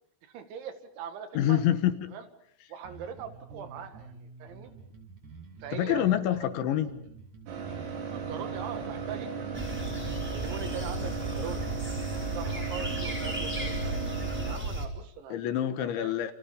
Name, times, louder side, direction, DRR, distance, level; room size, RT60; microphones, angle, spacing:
voice 1, 0.2-1.6 2.1-2.3 2.7-4.7 5.6-6.1 8.1-9.5 10.0-11.6 12.3-14.0 14.4-15.4 15.8-16.1, right 7 dB, 70° right, 9 dB, 4.0 m, -41 dB
voice 2, 1.4-2.0 5.7-6.9 15.3-16.3, left 11 dB, 70° left, 10 dB, 3.6 m, -26 dB
Bass guitar, 2.8-12.4, right 4 dB, 40° right, 5.1 m, -49 dB
sound 1, 7.5-14.6, right 5 dB, 90° right, 6.9 m, -36 dB
sound 2, 9.5-14.9, right 1 dB, ahead, 3.7 m, -34 dB
30.0 x 29.0 x 5.3 m, 0.67 s
omnidirectional pair, 5.8 m